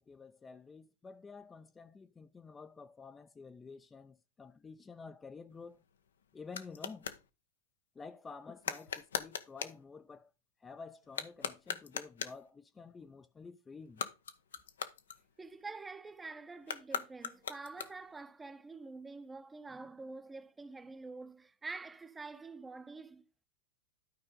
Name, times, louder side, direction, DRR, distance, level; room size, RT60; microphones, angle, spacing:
voice 1, 0.0-5.8 6.3-7.1 8.0-10.3 10.6-14.0, left 4 dB, 15° left, 0.5 m, -50 dB
sound 1, 5.5-7.2 8.6-9.8 11.0-12.5 13.8-15.6 16.6-18.2, left 7 dB, 80° left, 0.9 m, -41 dB
voice 2, 15.4-23.4, right 3 dB, 10° right, 0.8 m, -47 dB
12.5 x 4.8 x 3.7 m
hypercardioid pair, 105°, 0 cm